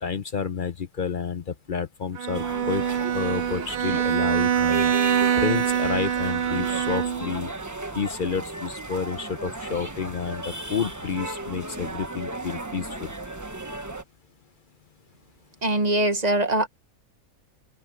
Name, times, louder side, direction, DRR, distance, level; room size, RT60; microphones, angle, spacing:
voice 1, 0.0-2.8 3.1-4.9 5.4-7.5 7.9-13.1, left 6 dB, 45° left, 0.7 m, -30 dB
Bowed string instrument, 2.2-7.4, right 9 dB, 70° right, 0.4 m, -24 dB
sound 1, 2.3-14.0, right 2 dB, 15° right, 1.0 m, -35 dB
voice 2, 15.6-16.7, right 1 dB, 30° right, 1.4 m, -22 dB
omnidirectional pair, 1.5 m